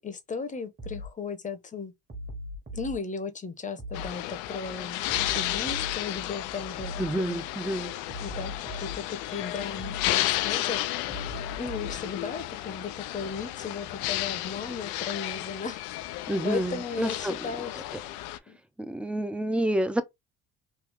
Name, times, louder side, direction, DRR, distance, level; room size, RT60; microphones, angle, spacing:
voice 1, 0.0-1.9 2.7-5.0 5.3-6.9 7.2-7.4 8.2-10.8 11.6-16.1 16.4-17.8 18.5-18.6, left 5 dB, 25° left, 0.8 m, -36 dB
sound 1, 0.8-1.1 2.1-2.9 3.8-4.1 5.1-6.0 6.8-7.1 8.1-9.0 9.8-10.1 11.1-12.0, left 1 dB, 30° right, 1.3 m, -38 dB
sound 2, 3.9-18.4, left 15 dB, 85° left, 0.5 m, -33 dB
voice 2, 7.0-7.9 16.3-17.5 18.8-20.0, right 1 dB, 5° right, 0.6 m, -29 dB
3.2 x 2.3 x 3.4 m
supercardioid pair, 90°, 29 cm